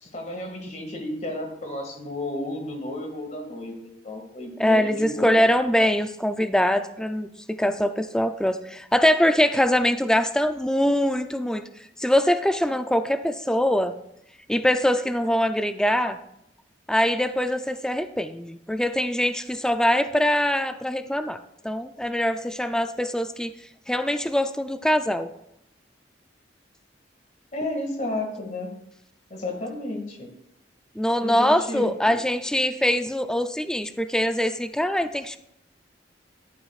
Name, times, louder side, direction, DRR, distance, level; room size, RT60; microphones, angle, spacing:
voice 1, 0.0-5.4 27.5-28.7 29.3-30.3 31.2-32.2, left 1 dB, 45° left, 3 dB, 2.1 m, -32 dB
voice 2, 4.6-11.6 12.0-13.9 14.5-16.2 16.9-21.4 21.6-23.5 23.9-25.3 31.0-35.4, equal, 5° left, 8 dB, 0.4 m, -23 dB
13.5 x 11.0 x 2.4 m, 0.80 s
head